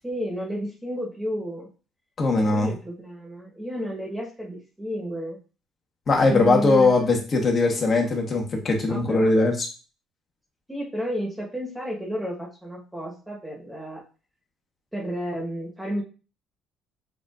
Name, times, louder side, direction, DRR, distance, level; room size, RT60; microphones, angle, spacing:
voice 1, 0.0-1.7 2.3-5.4 6.3-7.2 8.9-9.3 10.7-14.0 14.9-16.0, equal, 5° right, -3 dB, 1.1 m, -32 dB
voice 2, 2.2-2.7 6.1-9.7, left 3 dB, 35° left, 1 dB, 1.1 m, -20 dB
7.0 x 2.5 x 2.4 m, 0.35 s
cardioid pair, 140°, 0 cm